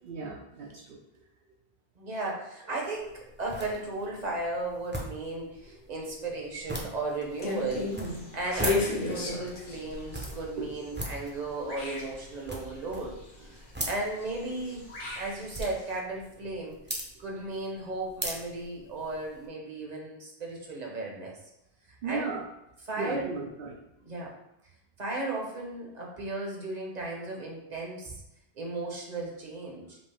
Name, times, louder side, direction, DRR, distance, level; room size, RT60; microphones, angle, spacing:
voice 1, 0.0-1.0 22.0-22.4 23.0-23.8, right 4 dB, 70° right, 0 dB, 0.8 m, -35 dB
voice 2, 2.0-13.1 13.4-14.8 15.1-16.8 17.1-21.3 22.0-22.3 22.9-23.3 24.0-24.4 25.0-28.2 28.6-30.0, right 2 dB, 45° right, -2 dB, 1.0 m, -35 dB
sound 1, 3.0-19.5, right 1 dB, 10° right, 0.6 m, -41 dB
sound 2, 7.3-11.3 11.6-13.2 14.0-15.8, left 2 dB, 60° left, 1.1 m, -33 dB
5.3 x 2.7 x 3.4 m, 0.84 s
omnidirectional pair, 1.0 m